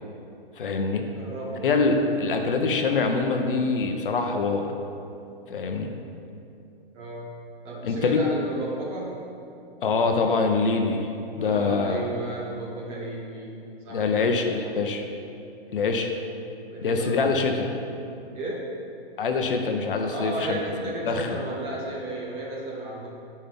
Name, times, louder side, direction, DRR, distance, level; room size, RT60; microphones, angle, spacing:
voice 1, 0.6-1.1 1.6-4.7 5.5-5.9 7.8-8.2 9.8-12.1 13.9-15.0 15.7-16.1 16.8-17.7 19.2-20.6 21.0-21.4, left 4 dB, 60° left, 4 dB, 0.9 m, -24 dB
voice 2, 1.1-1.7 6.9-7.3 7.6-9.3 11.4-14.3 16.7-17.5 18.3-18.7 20.1-23.1, right 2 dB, 20° right, -4 dB, 1.0 m, -34 dB
10.5 x 5.5 x 3.5 m, 2.7 s
hypercardioid pair, 160°, 31 cm